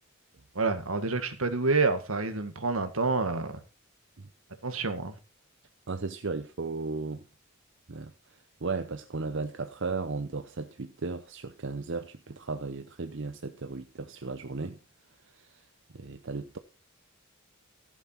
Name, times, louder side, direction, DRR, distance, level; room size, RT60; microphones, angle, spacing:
voice 1, 0.6-3.5 4.6-5.2, right 3 dB, 80° right, 1.9 m, -28 dB
voice 2, 5.9-7.2 7.9-8.1 8.6-14.8 15.4-15.6 15.9-16.6, right 3 dB, 60° right, 0.8 m, -35 dB
15.5 x 7.3 x 4.5 m
head